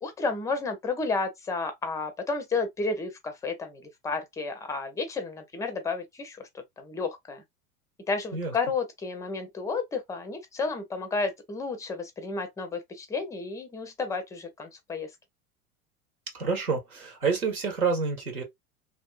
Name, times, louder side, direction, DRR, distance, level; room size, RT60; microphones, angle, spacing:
voice 1, 0.0-7.4 8.1-15.1, left 4 dB, 10° left, 0.4 m, -32 dB
voice 2, 16.3-18.4, right 5 dB, 80° right, 1.3 m, -28 dB
3.1 x 2.6 x 2.3 m
figure-of-eight pair, 85°, 43 cm